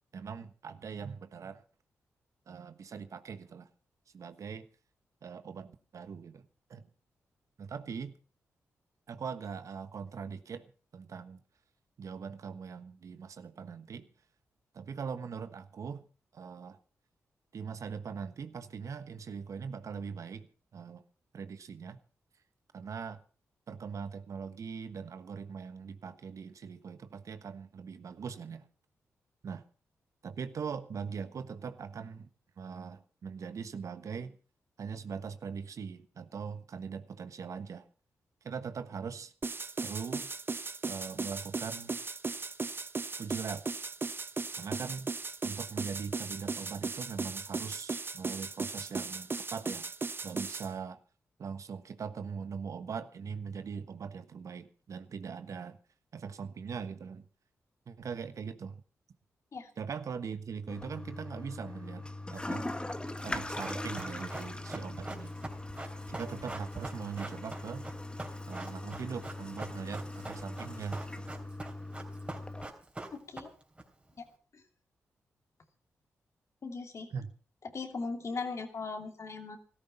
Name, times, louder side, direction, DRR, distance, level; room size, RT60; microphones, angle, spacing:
voice 1, 0.1-1.6 2.5-3.7 4.1-4.7 5.2-6.4 6.7-6.9 7.6-8.2 9.1-11.4 12.0-14.1 14.7-16.0 16.3-16.8 17.5-21.0 21.3-22.0 22.7-23.2 23.7-28.7 29.4-29.6 30.2-32.3 32.6-34.4 34.8-37.9 38.4-39.3 39.8-40.3 40.9-42.0 43.2-43.6 44.6-45.1 45.4-49.9 50.2-51.0 51.4-55.8 56.1-57.2 57.9-58.8 59.8-62.7 63.2-65.3 66.1-67.9 68.5-71.0 77.1-77.3, right 6 dB, 65° right, 11 dB, 1.2 m, -41 dB
sound 1, 39.4-50.7, right 4 dB, 40° right, 0.9 m, -37 dB
Toilet flush, 60.7-72.7, left 2 dB, 15° left, 1.5 m, -41 dB
Run, 63.2-73.8 74.1-74.2, right 2 dB, 20° right, 3.6 m, -43 dB
voice 2, 73.1-73.5 74.2-74.3 76.6-77.1 77.7-79.6, left 4 dB, 55° left, 6 dB, 2.8 m, -38 dB
15.0 x 13.5 x 5.5 m, 0.38 s
supercardioid pair, 50°, 6 cm